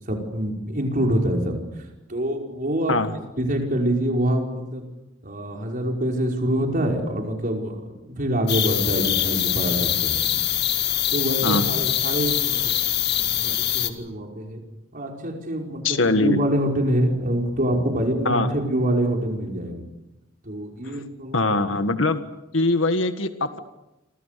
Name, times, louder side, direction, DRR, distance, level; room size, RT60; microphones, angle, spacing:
voice 1, 0.1-1.6 2.1-3.1 3.4-4.9 5.2-7.8 8.1-10.2 11.1-14.6 14.9-19.8 20.5-21.4, right 1 dB, 45° right, 1 dB, 5.4 m, -25 dB
sound 1, 8.5-13.9, left 11 dB, 60° left, 2.2 m, -23 dB
voice 2, 15.8-16.4 18.3-18.5 20.8-21.0 21.3-22.2 22.5-23.6, left 2 dB, 80° left, 8 dB, 1.7 m, -22 dB
29.0 x 26.0 x 6.9 m, 0.96 s
head